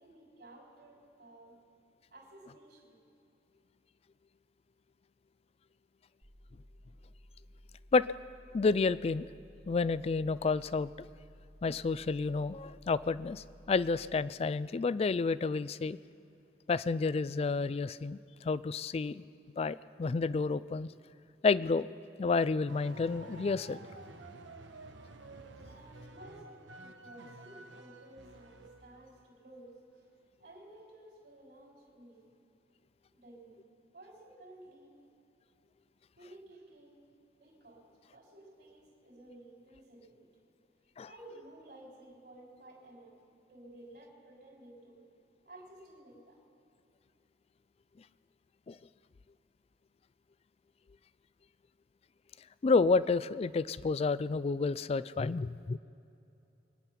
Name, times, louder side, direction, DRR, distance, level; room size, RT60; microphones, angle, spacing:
voice 1, 0.0-1.6 2.1-3.0 25.7-30.1 30.4-32.4 33.1-33.6 33.9-35.1 36.2-37.1 37.4-37.8 38.1-40.3 41.1-45.0 45.5-46.4, right 1 dB, 60° right, -1 dB, 3.6 m, -54 dB
sound 1, 6.2-14.2, equal, 30° right, 1.0 m, -57 dB
voice 2, 8.5-9.3 9.7-10.9 11.6-16.0 16.7-19.2 19.6-20.9 21.4-21.9 22.2-23.8 41.0-41.1 48.7-48.8 52.6-55.8, left 4 dB, 35° left, 17 dB, 0.3 m, -30 dB
sound 2, 22.7-29.2, right 2 dB, 90° right, 1.1 m, -51 dB
23.5 x 10.0 x 5.9 m, 2.8 s
head